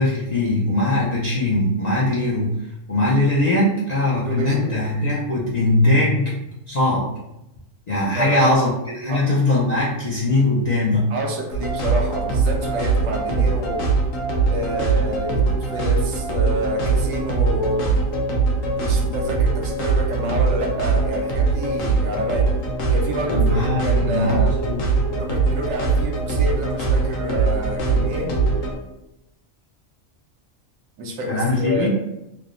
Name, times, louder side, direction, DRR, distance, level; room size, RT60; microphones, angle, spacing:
voice 1, 0.0-2.5 2.9-7.1 7.9-11.0 23.3-24.8 31.3-31.9, left 2 dB, 60° left, -7 dB, 0.4 m, -21 dB
voice 2, 4.2-4.9 8.1-8.5 9.1-9.3 11.1-13.9 14.5-18.0 18.7-22.5 22.9-24.5 25.1-28.4 31.0-31.9, right 1 dB, 85° right, 1 dB, 1.0 m, -28 dB
sound 1, 11.5-28.8, right 4 dB, 85° left, 1.1 m, -21 dB
3.3 x 2.0 x 2.4 m, 0.88 s
omnidirectional pair, 1.4 m